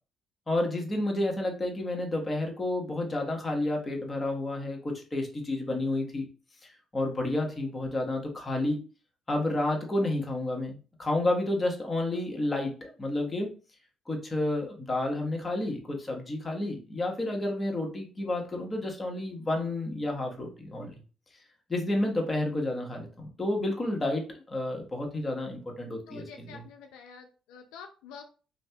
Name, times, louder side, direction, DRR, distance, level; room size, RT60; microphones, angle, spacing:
voice 1, 0.5-6.3 6.6-8.8 9.3-13.5 14.1-21.0 21.7-26.7, left 1 dB, 30° left, 1 dB, 1.1 m, -30 dB
voice 2, 26.1-28.2, left 6 dB, 80° left, 4 dB, 0.3 m, -48 dB
3.2 x 2.7 x 2.2 m, 0.36 s
hypercardioid pair, 55°, 0 cm